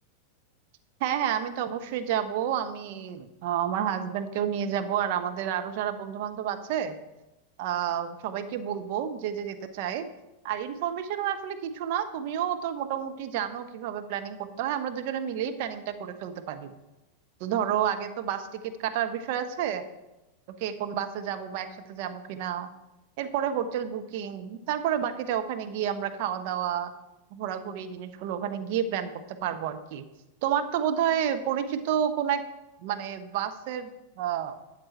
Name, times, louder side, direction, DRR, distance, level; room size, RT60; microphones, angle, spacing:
voice 1, 1.0-7.0 7.6-10.1 10.4-16.7 17.4-19.8 20.6-22.7 23.2-26.9 27.3-29.1 29.4-30.1 30.4-32.4 32.8-33.9 34.2-34.6, right 9 dB, 50° right, 7 dB, 0.9 m, -30 dB
12.5 x 7.8 x 4.4 m, 0.97 s
figure-of-eight pair, 90°, 0 cm